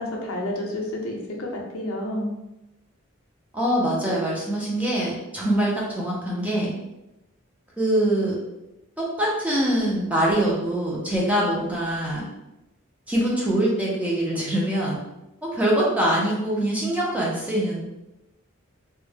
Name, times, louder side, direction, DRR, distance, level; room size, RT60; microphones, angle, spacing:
voice 1, 0.0-2.3, left 1 dB, 80° left, 0 dB, 0.6 m, -30 dB
voice 2, 3.5-6.7 7.8-8.4 9.0-12.2 13.1-15.0 15.4-17.8, right 1 dB, 5° right, -4 dB, 0.4 m, -23 dB
2.2 x 2.0 x 3.2 m, 0.95 s
head